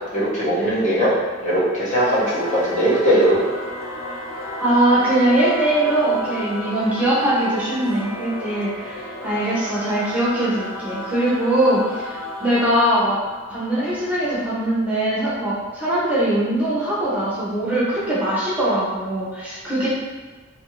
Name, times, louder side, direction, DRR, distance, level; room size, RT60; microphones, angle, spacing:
voice 1, 0.1-1.1 1.4-3.4, equal, 40° left, -8 dB, 0.9 m, -19 dB
Singing / Musical instrument, 1.8-14.7, left 1 dB, 85° left, 0.4 m, -33 dB
voice 2, 4.6-13.2 13.5-19.9, right 1 dB, 5° right, -9 dB, 0.6 m, -21 dB
2.6 x 2.5 x 2.9 m, 1.3 s
head